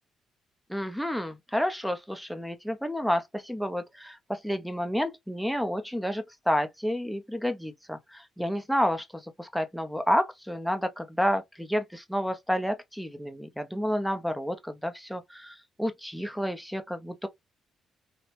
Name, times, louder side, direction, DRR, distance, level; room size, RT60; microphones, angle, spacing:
voice 1, 0.7-17.3, equal, ahead, 0.6 m, -30 dB
2.9 x 2.1 x 2.8 m
cardioid pair, 90°, 0 cm